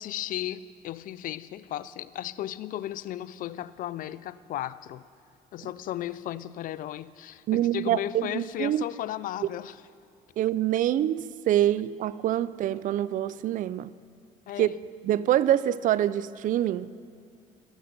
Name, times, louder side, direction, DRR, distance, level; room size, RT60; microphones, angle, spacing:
voice 1, 0.0-5.0 5.5-9.7 14.5-14.7, left 13 dB, 55° left, 17 dB, 0.4 m, -35 dB
voice 2, 7.5-8.8 9.4-9.5 10.4-13.9 14.6-14.7 15.0-16.9, right 12 dB, 55° right, 17 dB, 0.4 m, -25 dB
12.5 x 8.8 x 5.3 m, 2.5 s
supercardioid pair, 80°, 17 cm